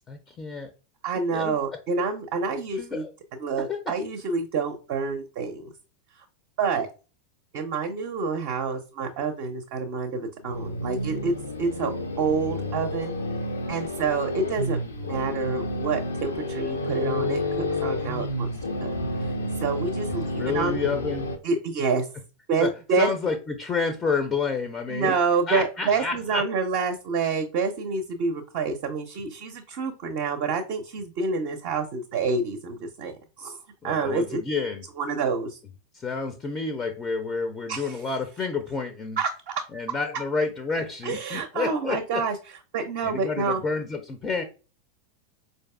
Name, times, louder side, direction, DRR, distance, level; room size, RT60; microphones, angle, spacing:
voice 1, 0.1-0.7 1.3-1.6 2.8-3.1 3.7-3.8 20.1-21.3 22.6-22.7 23.0-25.1 25.5-26.4 33.8-34.8 35.9-39.2 39.7-42.2 43.0-44.4, left 4 dB, 20° left, 7 dB, 0.4 m, -29 dB
voice 2, 1.0-3.0 3.4-5.7 6.6-6.9 7.5-13.1 13.7-18.5 18.8-18.9 19.2-19.3 19.6-20.8 21.4-22.1 22.5-23.1 24.9-33.6 33.8-34.4 35.0-35.6 37.7-38.0 39.2-39.3 41.0-42.4 42.7-43.6, right 4 dB, 45° right, 4 dB, 0.5 m, -28 dB
sound 1, 10.4-21.4, left 1 dB, 75° left, 0.5 m, -30 dB
4.5 x 2.6 x 2.2 m, 0.33 s
figure-of-eight pair, 90°, 0 cm